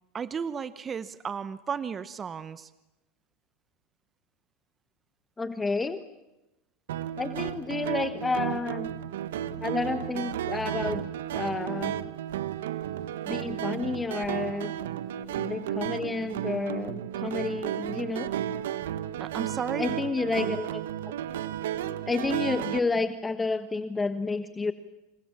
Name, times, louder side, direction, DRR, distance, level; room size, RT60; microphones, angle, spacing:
voice 1, 0.1-2.7 19.2-19.9, right 6 dB, 25° right, 15 dB, 0.9 m, -34 dB
voice 2, 5.4-6.0 7.2-8.9 9.4-12.0 13.2-14.7 15.3-18.3 19.8-20.8 22.1-24.7, left 3 dB, 15° left, 11 dB, 1.3 m, -30 dB
sound 1, 6.9-22.8, right 11 dB, 85° right, 1.2 m, -33 dB
28.0 x 28.0 x 7.4 m, 0.99 s
supercardioid pair, 105°, 0 cm